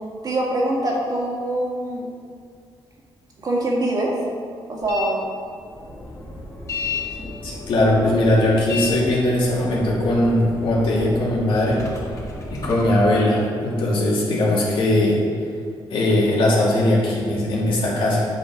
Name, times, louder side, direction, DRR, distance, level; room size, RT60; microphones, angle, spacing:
voice 1, 0.2-2.1 3.4-4.1 4.7-5.2 7.2-7.3, right 1 dB, 45° right, -3 dB, 2.0 m, -24 dB
sound 1, 4.8-5.0 5.4-13.0, left 3 dB, 35° left, 2.2 m, -33 dB
voice 2, 7.4-11.8 12.6-15.2 15.9-18.3, left 1 dB, 75° left, -5 dB, 2.5 m, -19 dB
9.4 x 6.2 x 4.8 m, 2.2 s
cardioid pair, 125°, 9 cm